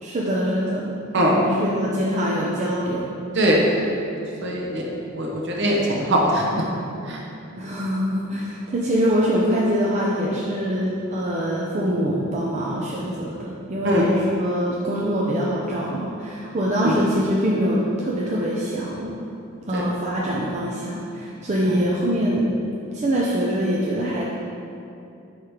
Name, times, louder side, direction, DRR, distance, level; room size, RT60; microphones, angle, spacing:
voice 1, 0.0-3.0 3.7-3.8 7.6-19.1 19.7-22.5 22.9-24.4, equal, 35° right, -5 dB, 0.5 m, -24 dB
voice 2, 3.3-3.8 4.4-6.6 7.1-7.2 13.8-14.0 16.8-16.9 19.7-19.8 21.7-21.8, equal, 55° right, -2 dB, 1.0 m, -21 dB
4.8 x 4.7 x 4.9 m, 2.7 s
head